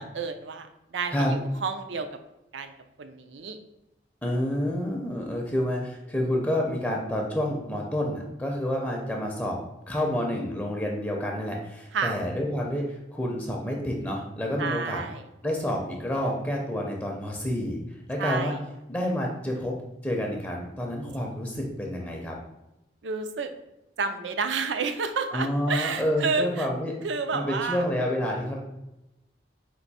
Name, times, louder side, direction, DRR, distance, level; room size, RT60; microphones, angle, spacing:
voice 1, 0.0-2.1 2.5-2.7 3.0-3.6 11.9-12.1 14.6-15.2 18.2-18.6 23.0-23.5 24.0-26.7 27.0-27.9, right 4 dB, 85° right, 8 dB, 0.5 m, -30 dB
voice 2, 4.2-9.6 9.9-15.0 15.4-17.8 18.1-18.5 18.9-19.7 20.0-22.4 25.3-26.9 27.3-28.6, equal, 10° left, 0 dB, 0.5 m, -29 dB
4.4 x 2.6 x 4.0 m, 0.92 s
head